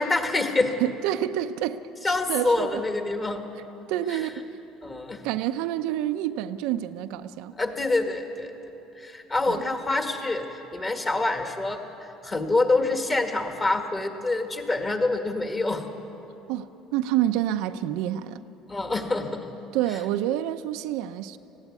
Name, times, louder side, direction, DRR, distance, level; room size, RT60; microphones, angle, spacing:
voice 1, 0.0-0.7 2.0-3.4 4.1-4.3 4.8-5.2 7.6-8.5 9.0-11.8 12.2-15.9 18.7-19.5, left 2 dB, 20° left, 5 dB, 1.7 m, -26 dB
voice 2, 0.8-2.8 3.9-4.3 5.2-7.5 9.5-9.6 16.5-18.4 19.7-21.4, right 12 dB, 80° right, 9 dB, 0.7 m, -28 dB
19.0 x 15.5 x 9.6 m, 3.0 s
cardioid pair, 135°, 0 cm